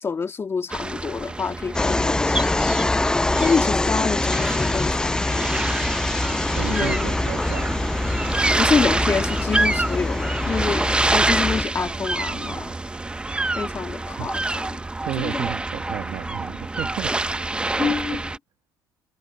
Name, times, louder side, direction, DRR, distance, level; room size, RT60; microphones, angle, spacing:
voice 1, 0.0-5.6 6.7-7.1 8.6-12.7 13.6-14.8 15.2-15.5 17.8-18.2, left 5 dB, 30° left, 2.6 m, -27 dB
sound 1, 0.7-18.4, right 2 dB, 10° right, 0.9 m, -27 dB
sound 2, 1.7-11.6, left 2 dB, 10° left, 0.3 m, -24 dB
voice 2, 6.5-7.9 8.8-8.9 12.3-12.6 14.2-14.3 15.0-17.1 17.8-17.9, right 13 dB, 65° right, 1.5 m, -32 dB
cardioid pair, 100°, 8 cm